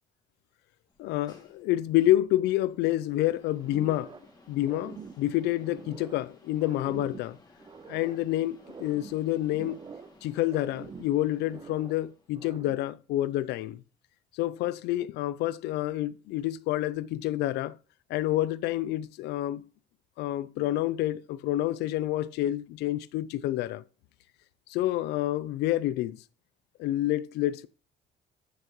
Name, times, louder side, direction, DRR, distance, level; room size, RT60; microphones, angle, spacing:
sound 1, 0.9-12.5, left 3 dB, 25° left, 2.4 m, -59 dB
voice 1, 1.0-4.1 4.5-7.4 7.9-9.8 10.2-13.8 14.3-17.8 18.1-19.7 20.2-23.8 24.7-26.2 26.8-27.7, left 14 dB, 85° left, 0.5 m, -28 dB
sound 2, 3.6-4.3 4.6-6.3 6.6-8.3 8.6-10.2 10.5-12.0 12.3-13.0, right 5 dB, 25° right, 0.6 m, -46 dB
13.5 x 6.4 x 3.0 m
cardioid pair, 110°, 17 cm